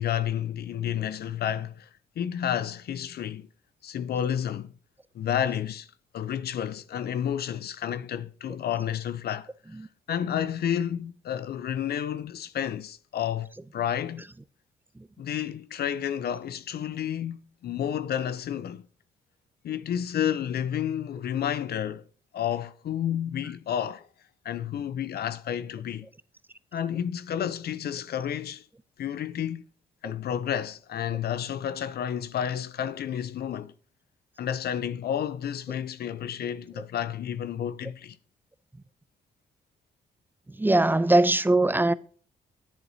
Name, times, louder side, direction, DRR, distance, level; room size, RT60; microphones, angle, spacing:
voice 1, 0.0-1.9 2.2-3.5 3.8-4.7 5.1-5.9 6.1-9.5 10.1-14.3 15.2-18.8 19.6-22.0 22.3-24.1 24.4-26.1 26.7-28.7 29.0-29.6 30.0-33.7 34.4-38.2, left 9 dB, 65° left, 0.5 m, -30 dB
voice 2, 40.5-41.9, right 2 dB, 10° right, 0.5 m, -21 dB
10.5 x 7.8 x 2.7 m
supercardioid pair, 55°, 18 cm